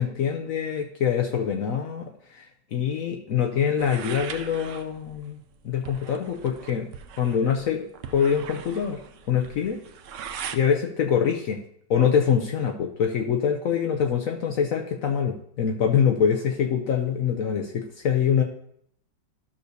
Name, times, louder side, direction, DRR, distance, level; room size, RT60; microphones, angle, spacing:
voice 1, 0.0-5.4 5.6-6.9 7.2-7.9 8.1-9.0 9.3-9.8 10.5-11.6 11.9-18.4, left 7 dB, 65° left, 3 dB, 0.8 m, -24 dB
sound 1, 3.8-10.6, right 7 dB, 85° right, 0.6 m, -40 dB
12.5 x 6.5 x 2.6 m, 0.71 s
omnidirectional pair, 2.0 m